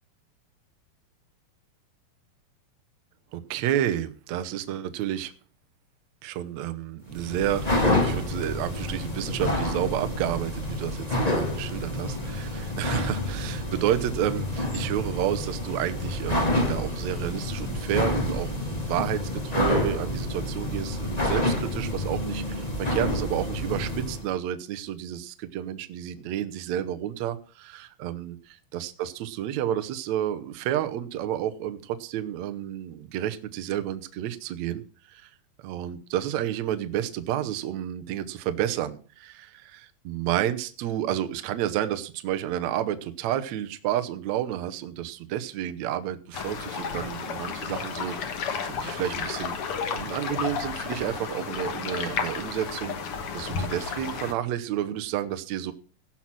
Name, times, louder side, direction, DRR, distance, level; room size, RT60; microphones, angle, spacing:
voice 1, 3.3-5.3 6.2-28.3 28.7-34.8 35.1-35.3 35.6-48.2 48.6-49.5 49.9-55.7, right 11 dB, 80° right, 9 dB, 1.6 m, -30 dB
sound 1, 7.1-24.3, left 1 dB, 30° left, 0.7 m, -28 dB
sound 2, 46.3-54.3, left 6 dB, 60° left, 1.5 m, -32 dB
17.0 x 6.0 x 6.1 m, 0.40 s
omnidirectional pair, 4.4 m